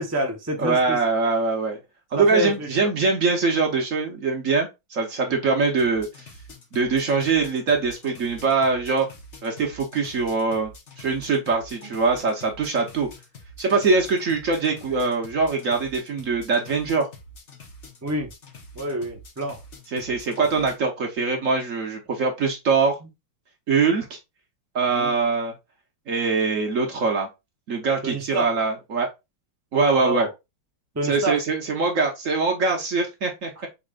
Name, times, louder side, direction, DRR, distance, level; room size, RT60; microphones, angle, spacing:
voice 1, 0.0-1.0 2.1-2.7 5.3-5.4 11.8-11.9 18.0-18.3 18.7-19.6 24.9-25.1 28.0-28.5 30.0-30.3 30.9-31.4, right 1 dB, 15° right, 0.6 m, -28 dB
voice 2, 0.6-1.8 2.1-6.3 6.7-9.1 9.4-10.7 11.0-13.1 13.6-17.1 19.9-23.0 23.7-24.2 24.7-25.5 26.1-27.3 27.7-29.1 29.7-30.3 31.0-33.7, right 4 dB, 50° right, 1.1 m, -23 dB
sound 1, 5.7-20.8, left 1 dB, 45° left, 1.2 m, -46 dB
5.0 x 4.2 x 2.4 m
omnidirectional pair, 2.0 m